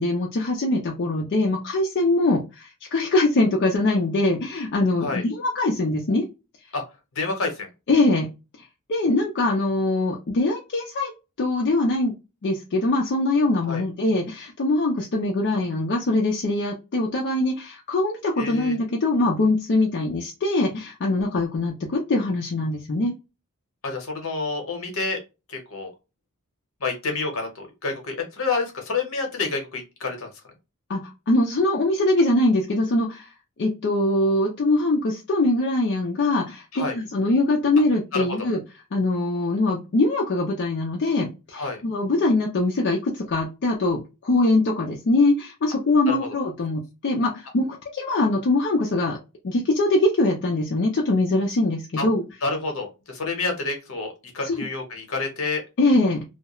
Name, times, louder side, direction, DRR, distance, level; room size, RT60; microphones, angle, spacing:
voice 1, 0.0-6.2 7.9-8.3 8.9-11.1 11.4-12.1 12.4-23.1 30.9-33.3 33.6-38.6 38.9-49.2 49.4-52.2 54.4-54.6 55.8-56.2, left 2 dB, 55° left, -1 dB, 0.4 m, -22 dB
voice 2, 7.2-7.7 13.6-13.8 18.4-18.8 23.8-25.2 25.5-25.9 26.8-30.3 36.7-37.0 38.1-38.2 41.5-41.8 46.1-46.2 52.0-52.1 52.4-55.6, left 3 dB, 70° left, 3 dB, 0.9 m, -28 dB
2.3 x 2.1 x 2.9 m, 0.28 s
head